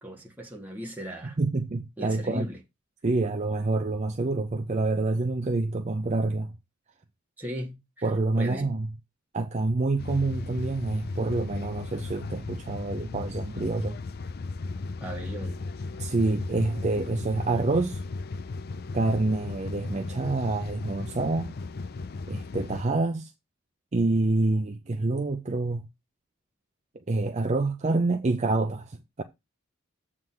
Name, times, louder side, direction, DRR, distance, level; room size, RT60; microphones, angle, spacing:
voice 1, 0.0-1.4 2.0-2.6 7.4-8.1 8.4-8.7 15.0-15.6, equal, 10° right, 1.8 m, -37 dB
voice 2, 1.4-2.5 3.0-6.6 8.0-8.9 9.3-14.0 16.0-18.0 18.9-21.6 22.3-23.3 23.9-25.9 27.1-29.2, right 2 dB, 35° right, 0.5 m, -27 dB
sound 1, 10.0-22.8, left 3 dB, 50° left, 0.4 m, -36 dB
7.8 x 3.7 x 6.1 m
head